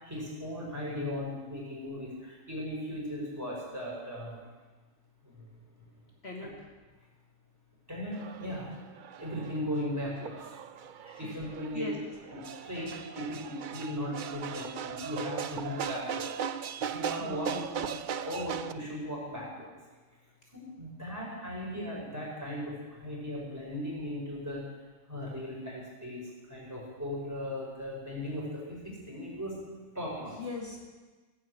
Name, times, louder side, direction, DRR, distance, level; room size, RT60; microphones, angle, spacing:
voice 1, 0.0-4.4 5.3-5.4 7.9-8.7 9.2-10.3 11.0-11.9 12.3-16.3 16.8-17.5 18.1-19.7 20.5-24.6 25.1-26.2 26.5-29.6 29.9-30.4, left 1 dB, 10° right, -5 dB, 5.6 m, -37 dB
voice 2, 6.2-6.7 11.2-11.3 11.7-12.0 17.2-18.0 30.4-30.8, left 3 dB, 50° left, -2 dB, 2.2 m, -40 dB
sound 1, 8.1-18.7, right 8 dB, 60° right, 0.5 m, -38 dB
16.5 x 9.0 x 8.2 m, 1.3 s
omnidirectional pair, 1.4 m